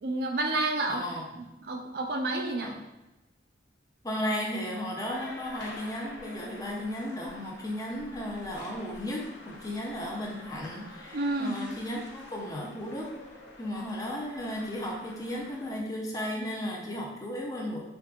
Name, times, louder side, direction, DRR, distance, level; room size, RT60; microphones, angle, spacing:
voice 1, 0.0-1.0 1.4-2.7 11.1-11.6, right 2 dB, 55° right, 3 dB, 0.4 m, -30 dB
voice 2, 0.9-1.2 2.6-2.7 4.0-13.2 13.6-17.8, left 1 dB, 20° left, -1 dB, 0.5 m, -35 dB
sound 1, 5.1-15.8, left 1 dB, 85° left, 0.7 m, -48 dB
3.6 x 3.5 x 2.4 m, 0.99 s
head